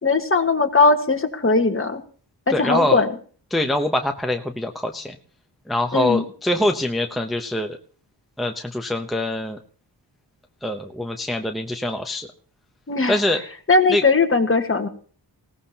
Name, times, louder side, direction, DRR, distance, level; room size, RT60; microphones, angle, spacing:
voice 1, 0.0-2.0 2.5-3.1 5.9-6.3 12.9-13.2 13.7-14.9, left 3 dB, 30° left, 6 dB, 1.6 m, -19 dB
voice 2, 2.5-3.0 3.5-5.2 5.7-7.8 8.4-9.6 10.6-12.3 13.1-13.4 13.9-14.0, left 1 dB, ahead, 3 dB, 0.8 m, -24 dB
20.0 x 17.0 x 2.9 m, 0.43 s
wide cardioid pair, 150°, 44 cm